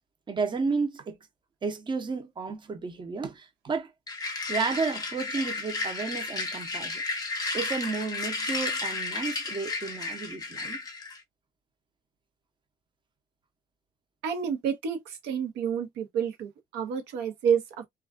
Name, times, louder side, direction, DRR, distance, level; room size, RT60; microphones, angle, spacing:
voice 1, 0.3-1.2 1.6-3.9 4.5-7.0 7.5-10.8, right 4 dB, 30° right, 0.7 m, -32 dB
sound 1, 4.1-11.2, left 3 dB, 20° left, 0.7 m, -33 dB
voice 2, 14.2-17.9, right 7 dB, 90° right, 0.9 m, -29 dB
2.4 x 2.3 x 2.4 m
cardioid pair, 110°, 17 cm